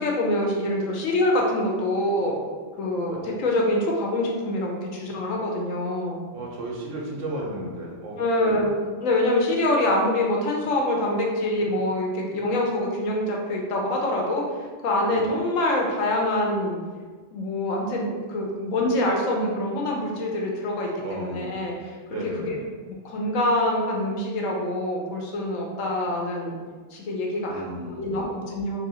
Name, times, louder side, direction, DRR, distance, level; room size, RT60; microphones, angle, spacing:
voice 1, 0.0-2.4 2.8-6.2 8.2-14.5 14.8-16.8 17.3-22.0 22.4-22.5 23.0-26.6 26.9-28.9, left 1 dB, 90° left, -1 dB, 1.1 m, -25 dB
voice 2, 6.3-8.7 15.1-15.3 21.0-21.7 22.1-22.7 27.5-28.2, right 1 dB, 75° right, -2 dB, 1.1 m, -34 dB
2.9 x 2.8 x 4.1 m, 1.5 s
omnidirectional pair, 1.3 m